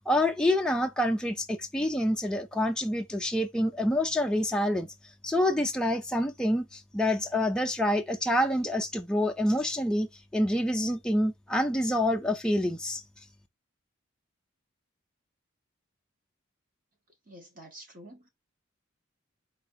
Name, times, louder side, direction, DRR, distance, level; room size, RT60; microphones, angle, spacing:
voice 1, 0.1-4.9 5.2-10.1 10.3-13.0, left 1 dB, 5° left, 0.5 m, -27 dB
voice 2, 17.3-18.3, right 1 dB, 40° right, 1.6 m, -48 dB
4.1 x 2.9 x 3.8 m
head